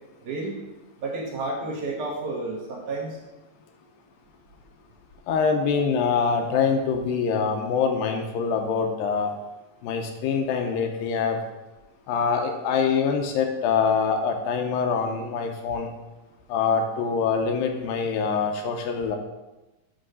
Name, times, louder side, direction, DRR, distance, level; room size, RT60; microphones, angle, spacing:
voice 1, 0.2-0.6 1.0-3.2, right 2 dB, 70° right, -2 dB, 2.2 m, -31 dB
voice 2, 5.3-9.3 9.8-11.4 12.1-15.9 16.5-19.2, left 6 dB, 80° left, 4 dB, 2.4 m, -24 dB
7.7 x 3.1 x 6.2 m, 1.0 s
omnidirectional pair, 4.2 m